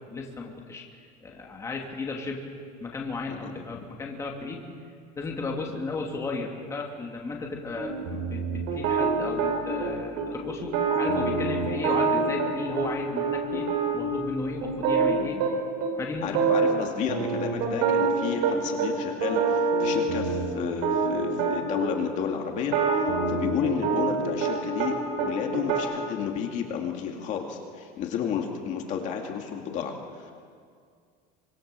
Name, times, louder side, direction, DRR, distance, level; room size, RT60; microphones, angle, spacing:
voice 1, 0.1-0.8 1.2-2.5 2.8-4.6 5.2-13.7 13.9-15.4 16.0-16.4, left 3 dB, 15° left, 0 dB, 2.6 m, -34 dB
voice 2, 3.3-3.8 16.2-30.3, left 7 dB, 40° left, 2 dB, 2.5 m, -32 dB
sound 1, 7.7-9.9 10.2-10.3 10.6-12.9 13.2-15.5 15.8-15.9 16.2-16.8 17.1-18.9 19.2-21.9 22.6-24.9 25.2-25.8, right 5 dB, 65° right, 5.4 m, -26 dB
25.5 x 24.5 x 6.9 m, 2.1 s
cardioid pair, 155°, 18 cm